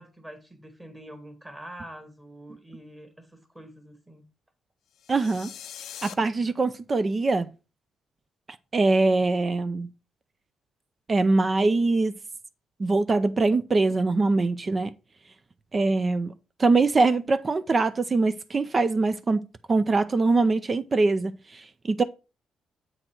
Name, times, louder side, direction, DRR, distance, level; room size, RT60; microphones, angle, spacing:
voice 1, 0.0-4.2, right 1 dB, 15° right, 1.8 m, -45 dB
sound 1, 5.0-6.1, left 10 dB, 75° left, 0.5 m, -42 dB
voice 2, 5.1-5.5 6.0-7.5 8.7-9.9 11.1-12.1 12.8-14.9 15.7-16.3 16.6-22.0, right 3 dB, 30° right, 0.5 m, -23 dB
7.8 x 3.9 x 4.4 m
cardioid pair, 90°, 0 cm